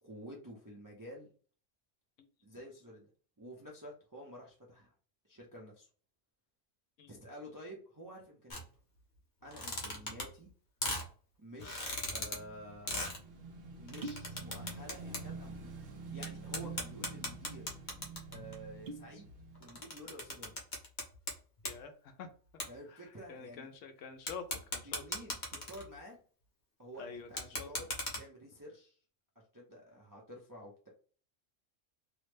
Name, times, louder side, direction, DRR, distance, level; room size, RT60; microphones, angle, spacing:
voice 1, 0.0-1.3 2.4-3.1 3.4-4.9 5.2-5.9 7.1-8.7 9.4-10.5 11.4-13.1 13.7-15.8 16.1-17.6 18.3-19.3 19.6-20.5 22.7-23.7 24.8-26.2 26.8-27.9 28.2-29.0 29.5-30.9, equal, 25° right, -2 dB, 0.5 m, -50 dB
sound 1, 8.5-8.6 9.4-10.5 10.8-11.1 11.6-12.4 12.8-13.2 13.9-15.2 15.5-15.6 16.2-16.3 16.5-18.5 19.3-21.3 21.6-21.8 22.6-22.7 24.3-26.0 27.3-28.2, left 2 dB, 45° left, 0.9 m, -38 dB
Motorcycle / Engine, 12.0-20.5, right 4 dB, 80° right, 1.2 m, -48 dB
sound 2, 13.8-14.4 14.6-15.3 15.6-15.7 16.4-16.9 17.4-17.5 17.7-17.9 18.6-19.2 19.6-20.0, right 2 dB, 60° right, 0.7 m, -46 dB
voice 2, 21.6-22.3 22.9-23.0 23.3-25.0 27.0-27.7, left 6 dB, 85° left, 6 dB, 1.0 m, -47 dB
3.1 x 2.1 x 3.2 m, 0.42 s
omnidirectional pair, 1.3 m